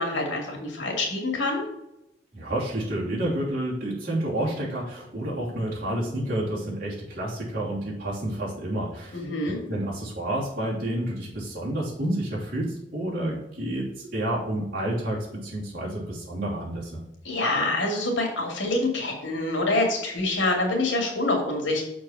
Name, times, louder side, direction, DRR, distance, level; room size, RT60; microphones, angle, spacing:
voice 1, 0.0-1.6 9.1-9.6 17.2-21.8, left 2 dB, 80° left, 1 dB, 2.3 m, -26 dB
voice 2, 2.3-9.2 9.7-17.0, right 1 dB, 50° right, -8 dB, 2.9 m, -29 dB
6.4 x 4.6 x 5.7 m, 0.86 s
head